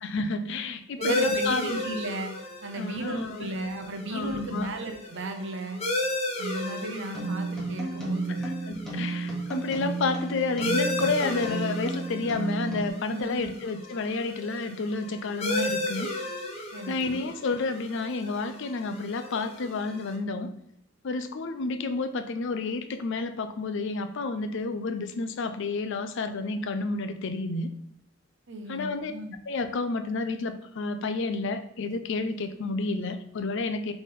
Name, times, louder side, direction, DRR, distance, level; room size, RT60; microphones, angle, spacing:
voice 1, 0.0-1.7 2.7-3.5 4.1-4.7 8.4-16.1 16.9-20.5 21.0-27.7 28.7-29.1 29.5-33.9, left 3 dB, 60° left, 9 dB, 0.5 m, -30 dB
sound 1, 1.0-20.2, left 1 dB, 30° left, 0.8 m, -35 dB
voice 2, 1.0-2.3 2.6-5.8 6.4-8.4 13.1-13.5 16.7-17.3 28.5-29.3, right 2 dB, 60° right, 5 dB, 0.7 m, -35 dB
sound 2, 7.1-12.9, right 3 dB, 5° left, 1.2 m, -32 dB
4.1 x 3.4 x 3.7 m, 0.78 s
head